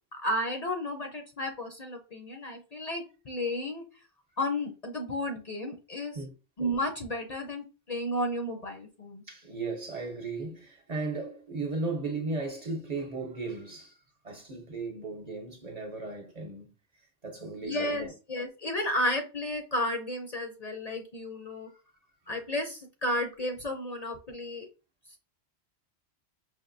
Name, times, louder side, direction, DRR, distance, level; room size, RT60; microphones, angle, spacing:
voice 1, 0.2-3.8 4.4-6.2 6.6-9.2 17.6-21.7 22.3-24.7, left 1 dB, 45° left, 0.7 m, -32 dB
voice 2, 9.3-13.9 14.2-16.7 17.2-18.1, right 3 dB, 40° right, 0.9 m, -36 dB
5.1 x 2.7 x 2.6 m
omnidirectional pair, 1.1 m